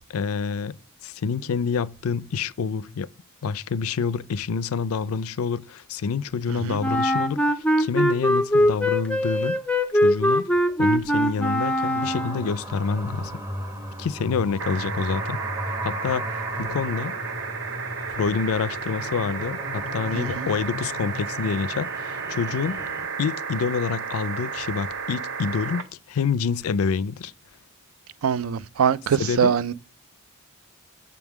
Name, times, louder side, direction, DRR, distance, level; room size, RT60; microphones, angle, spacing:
voice 1, 0.1-0.8 1.0-3.1 3.4-9.6 9.9-10.5 10.8-13.3 14.0-15.4 15.8-17.1 18.1-22.8 23.2-27.3 29.2-29.6, left 5 dB, 80° left, 0.4 m, -27 dB
voice 2, 6.5-6.8 20.2-20.5 28.2-29.7, right 7 dB, 75° right, 0.4 m, -23 dB
Wind instrument woodwind instrument, 6.8-12.5, equal, 5° left, 0.4 m, -22 dB
sound 1, 11.7-23.1, equal, 15° right, 0.8 m, -35 dB
sound 2, 14.6-25.8 27.3-27.4, right 5 dB, 60° right, 0.8 m, -33 dB
6.9 x 3.6 x 5.9 m
head